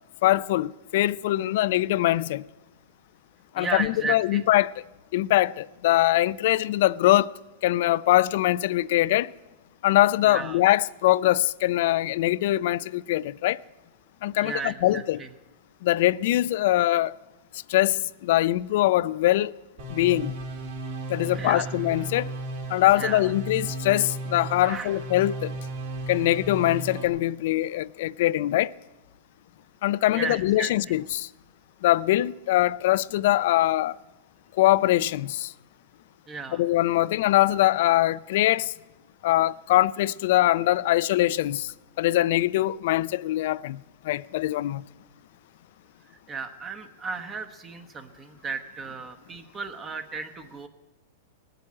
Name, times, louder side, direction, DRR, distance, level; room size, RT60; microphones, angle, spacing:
voice 1, 0.2-2.4 3.5-4.7 5.1-7.3 7.6-9.3 9.8-13.6 14.2-15.2 15.8-17.1 17.7-19.5 19.9-20.3 21.1-22.3 22.7-25.5 26.1-28.7 29.8-31.3 31.8-34.0 34.6-35.5 36.5-38.7 39.2-41.7 42.0-44.8, left 15 dB, 65° left, 0.4 m, -23 dB
voice 2, 3.6-4.4 10.2-10.6 14.4-15.3 21.3-21.7 23.0-23.3 24.6-24.9 30.1-30.7 36.3-36.6 46.3-50.7, right 4 dB, 20° right, 1.0 m, -34 dB
sound 1, 19.8-27.1, right 2 dB, 70° right, 4.0 m, -35 dB
19.5 x 7.8 x 8.7 m
supercardioid pair, 140°, 0 cm